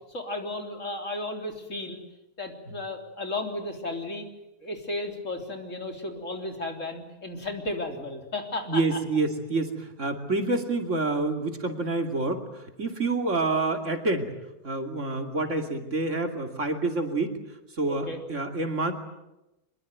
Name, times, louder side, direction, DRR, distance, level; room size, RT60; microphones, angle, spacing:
voice 1, 0.1-2.0 2.4-4.3 4.6-8.8 17.9-18.2, left 2 dB, 55° left, 3 dB, 3.9 m, -34 dB
voice 2, 8.7-14.3 14.6-17.4 17.7-18.9, right 3 dB, 55° right, 5 dB, 3.0 m, -28 dB
25.0 x 22.0 x 9.5 m, 0.94 s
omnidirectional pair, 1.5 m